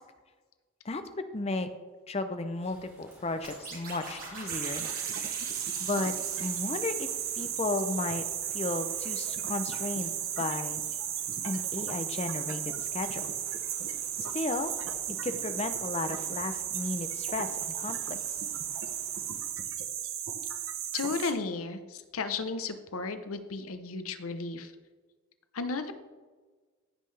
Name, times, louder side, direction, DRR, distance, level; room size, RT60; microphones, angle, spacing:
voice 1, 0.8-1.7 2.1-4.9 5.8-7.1 7.4-8.3 8.5-10.8 11.4-13.3 14.2-14.7 15.2-18.4, left 2 dB, 30° left, 9 dB, 0.6 m, -34 dB
sound 1, 2.6-19.5, equal, 10° right, 2.8 m, -57 dB
sound 2, 3.4-8.2, right 3 dB, 40° right, 2.7 m, -45 dB
sound 3, 4.5-21.3, right 9 dB, 75° right, 0.9 m, -34 dB
voice 2, 20.9-24.7 25.5-25.9, left 4 dB, 90° left, 9 dB, 0.7 m, -34 dB
15.0 x 5.6 x 3.3 m, 1.4 s
head